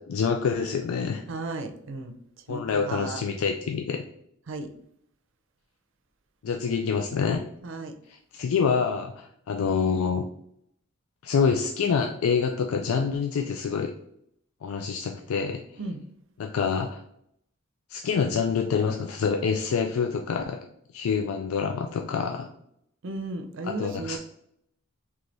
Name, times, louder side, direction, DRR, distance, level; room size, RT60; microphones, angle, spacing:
voice 1, 0.1-1.2 2.5-4.0 6.4-7.4 8.1-10.3 11.2-13.9 14.6-15.6 16.4-17.0 17.9-20.6 20.9-22.5 23.6-24.2, left 6 dB, 85° left, 4 dB, 0.4 m, -26 dB
voice 2, 1.3-2.2 2.5-3.2 4.5-4.7 7.6-7.9 15.8-16.0 23.0-24.2, right 2 dB, 65° right, 7 dB, 0.5 m, -34 dB
3.3 x 3.3 x 3.8 m, 0.72 s
head